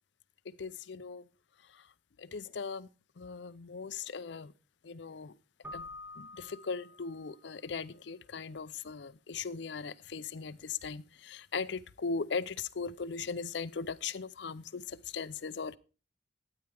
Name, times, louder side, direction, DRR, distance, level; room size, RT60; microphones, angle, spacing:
voice 1, 0.6-1.2 1.7-1.8 2.2-2.9 3.2-4.5 4.8-5.3 5.7-5.9 6.2-15.8, left 5 dB, 65° left, 0.5 m, -39 dB
Keyboard (musical), 5.6-7.4, left 2 dB, 10° right, 1.0 m, -47 dB
12.5 x 9.1 x 3.4 m
head